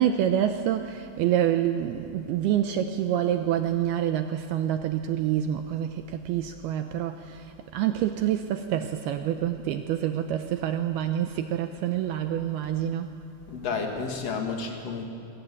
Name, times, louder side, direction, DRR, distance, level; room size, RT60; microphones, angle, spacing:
voice 1, 0.0-13.1, right 10 dB, 80° right, 7 dB, 2.3 m, -27 dB
voice 2, 13.5-15.1, left 5 dB, 45° left, 2 dB, 2.4 m, -31 dB
21.5 x 19.0 x 9.2 m, 2.5 s
omnidirectional pair, 5.2 m